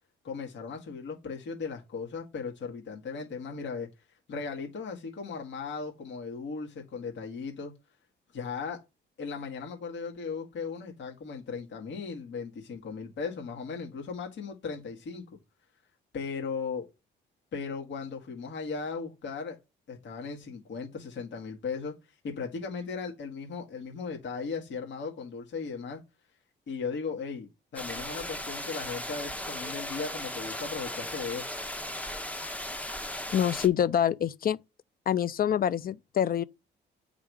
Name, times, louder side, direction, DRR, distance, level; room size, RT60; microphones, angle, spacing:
voice 1, 0.2-3.9 4.3-7.7 8.3-8.8 9.2-15.2 16.1-16.9 17.5-19.6 19.9-21.9 22.2-26.0 26.7-31.5, left 5 dB, 65° left, 1.9 m, -37 dB
sound 1, 27.7-33.7, left 1 dB, 5° left, 1.1 m, -37 dB
voice 2, 33.3-34.6 35.1-36.4, left 9 dB, 50° left, 0.5 m, -26 dB
8.8 x 3.7 x 4.8 m
cardioid pair, 90°, 20 cm